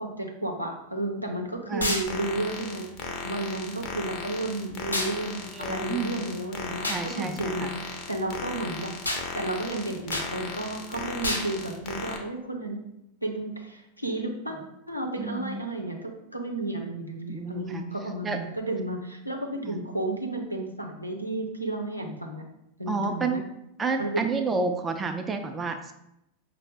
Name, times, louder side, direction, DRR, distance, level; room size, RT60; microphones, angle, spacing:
voice 1, 0.0-2.9 3.2-8.9 9.3-12.8 13.2-14.6 14.9-22.4 22.8-23.4 24.0-24.2, right 2 dB, 90° right, 1 dB, 0.6 m, -32 dB
voice 2, 1.7-2.0 5.5-6.1 6.9-7.7 15.2-15.6 17.3-17.8 18.2-18.4 19.6-19.8 22.9-23.4 23.8-25.9, right 4 dB, 15° right, 5 dB, 0.4 m, -30 dB
sound 1, 1.8-2.1 4.9-5.1 6.8-7.0 9.0-9.3 10.1-10.3 11.2-11.5, left 1 dB, 80° left, 0.6 m, -28 dB
sound 2, 2.1-12.2, left 4 dB, 40° left, 0.6 m, -37 dB
5.4 x 2.0 x 3.4 m, 0.83 s
figure-of-eight pair, 90°, 0 cm